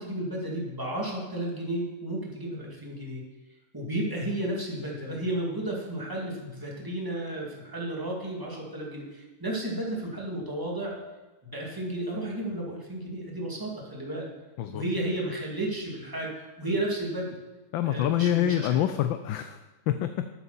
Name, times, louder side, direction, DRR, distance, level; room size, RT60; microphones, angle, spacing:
voice 1, 0.0-3.2 3.7-10.9 11.4-14.3 14.7-17.4 17.8-18.7, right 1 dB, 10° right, -3 dB, 2.1 m, -33 dB
voice 2, 17.7-19.6 19.9-20.2, left 11 dB, 75° left, 10 dB, 1.2 m, -26 dB
12.5 x 9.2 x 4.1 m, 1.2 s
omnidirectional pair, 2.4 m